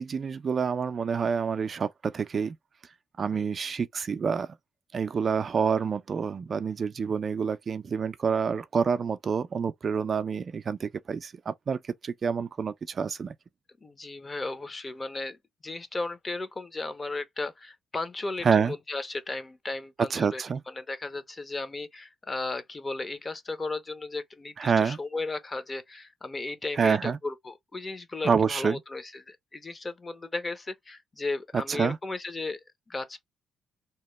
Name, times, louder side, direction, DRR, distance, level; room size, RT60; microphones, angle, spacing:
voice 1, 0.0-2.6 3.2-4.5 4.9-13.3 18.4-18.7 20.1-20.6 24.6-25.0 26.8-27.2 28.2-28.8 31.7-32.0, right 6 dB, 45° right, 0.3 m, -27 dB
voice 2, 13.8-33.2, left 3 dB, 25° left, 0.6 m, -35 dB
2.8 x 2.1 x 3.1 m
cardioid pair, 90°, 0 cm